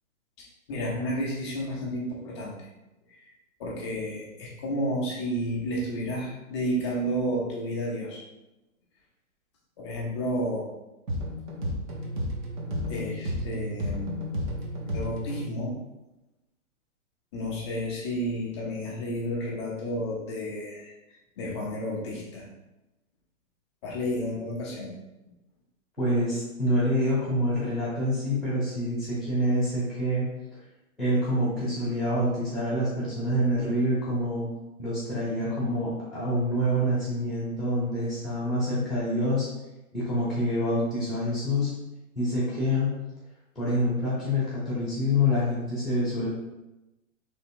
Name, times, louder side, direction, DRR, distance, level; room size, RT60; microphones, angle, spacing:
voice 1, 0.4-2.7 3.1-3.3 3.6-8.2 9.8-10.7 12.9-14.2 14.9-15.7 17.3-22.5 23.8-24.9, equal, 20° left, -4 dB, 0.6 m, -31 dB
sound 1, 11.1-15.6, equal, 35° right, 0.8 m, -32 dB
voice 2, 26.0-30.3 31.0-34.5 34.8-39.5 39.9-41.7 42.1-43.0 43.5-46.3, left 1 dB, 5° left, -13 dB, 1.0 m, -26 dB
3.5 x 3.1 x 4.6 m, 0.98 s
hypercardioid pair, 165°, 42 cm